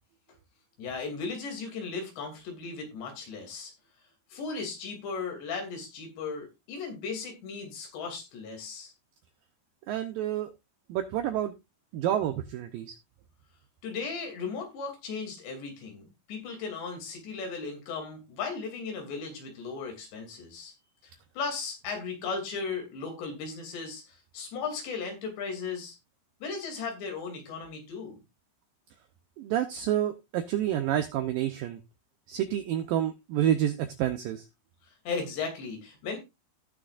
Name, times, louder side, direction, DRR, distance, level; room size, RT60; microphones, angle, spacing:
voice 1, 0.8-3.7 4.3-8.9 13.8-20.7 21.0-26.0 26.4-28.2 34.8-36.2, left 4 dB, 80° left, 3 dB, 4.9 m, -36 dB
voice 2, 9.9-10.5 10.9-11.5 11.9-13.0 29.4-31.8 32.3-34.5, right 11 dB, 85° right, 9 dB, 2.0 m, -29 dB
17.5 x 6.2 x 2.5 m, 0.23 s
omnidirectional pair, 4.9 m